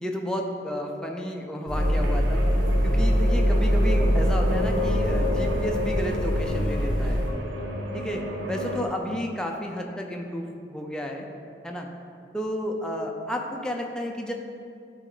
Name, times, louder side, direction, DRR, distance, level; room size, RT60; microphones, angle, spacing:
voice 1, 0.0-2.4 2.8-7.3 7.9-11.3 11.6-11.9 12.3-14.3, equal, 5° left, 1 dB, 0.5 m, -32 dB
sound 1, 1.7-7.3, equal, 25° right, 1.2 m, -23 dB
sound 2, 1.7-8.8, left 1 dB, 90° right, 1.1 m, -30 dB
11.5 x 4.2 x 3.9 m, 2.4 s
head